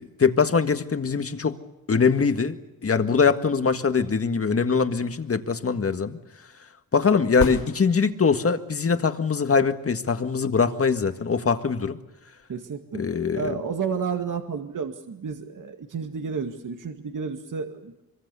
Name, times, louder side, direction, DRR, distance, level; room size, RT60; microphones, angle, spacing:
voice 1, 0.0-1.6 1.9-6.2 6.9-12.0 12.9-13.6, left 5 dB, 40° left, 8 dB, 1.7 m, -22 dB
sound 1, 7.4-8.5 12.4-12.5, left 6 dB, 75° left, 4.6 m, -31 dB
voice 2, 12.5-13.1 13.3-18.0, right 6 dB, 55° right, 5 dB, 2.0 m, -31 dB
24.5 x 24.0 x 6.9 m, 0.96 s
cardioid pair, 90°, 36 cm